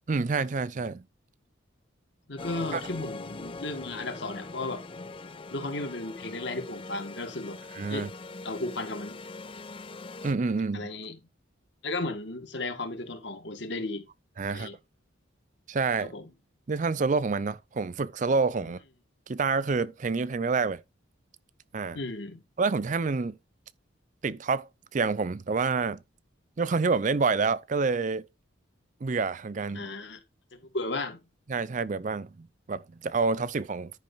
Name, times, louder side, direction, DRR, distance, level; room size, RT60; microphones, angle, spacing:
voice 1, 0.1-1.0 2.7-2.8 7.7-8.1 10.2-10.9 14.4-14.7 15.7-16.1 16.7-18.8 19.3-20.8 21.7-22.0 22.6-23.4 24.2-26.0 26.6-28.2 29.0-29.9 31.5-33.9, right 4 dB, 40° right, 0.4 m, -28 dB
voice 2, 2.3-4.8 5.5-7.6 7.9-8.1 8.4-9.2 10.7-11.2 11.8-14.1 14.5-14.8 16.0-16.3 21.9-22.4 29.7-30.2 30.5-31.2, left 2 dB, 60° left, 1.7 m, -34 dB
sound 1, 2.4-10.3, left 3 dB, 25° left, 0.6 m, -42 dB
10.5 x 5.4 x 4.0 m
head